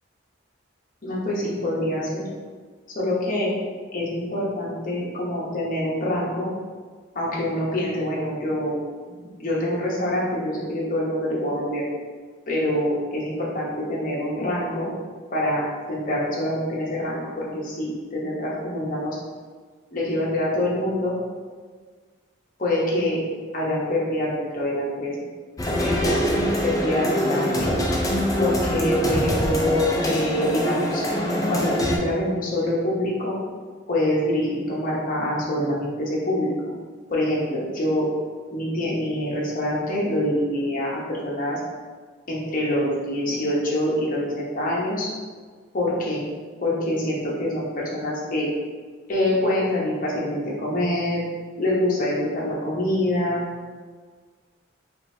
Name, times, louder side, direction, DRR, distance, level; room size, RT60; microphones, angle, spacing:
voice 1, 1.0-2.3 2.9-3.5 3.9-6.5 7.1-8.8 9.1-11.9 12.5-14.9 15.3-15.6 15.9-19.2 19.9-21.2 22.6-23.2 23.5-25.1 25.8-27.9 28.4-31.0 31.5-33.4 33.9-36.6 37.1-38.1 38.5-41.6 42.3-45.1 45.7-46.2 46.6-48.5 49.1-51.2 51.6-53.4, left 1 dB, 40° left, -5 dB, 0.9 m, -25 dB
sound 1, 25.6-32.0, equal, 15° left, 0.4 m, -23 dB
5.1 x 2.5 x 2.7 m, 1.5 s
head